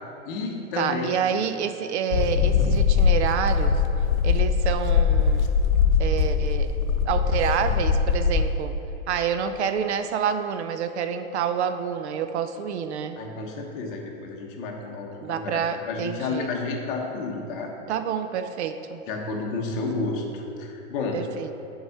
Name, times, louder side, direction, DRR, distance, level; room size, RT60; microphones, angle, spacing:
voice 1, 0.2-1.1 13.2-17.7 19.1-21.2, left 3 dB, 40° left, 0 dB, 1.2 m, -31 dB
voice 2, 0.8-3.7 4.2-5.5 6.0-6.7 7.0-8.7 9.1-13.2 15.2-16.5 17.9-19.0 21.1-21.5, right 7 dB, 55° right, 9 dB, 0.5 m, -28 dB
sound 1, 2.1-8.5, left 6 dB, 85° left, 0.8 m, -21 dB
6.5 x 4.8 x 6.6 m, 2.9 s
hypercardioid pair, 150°, 40 cm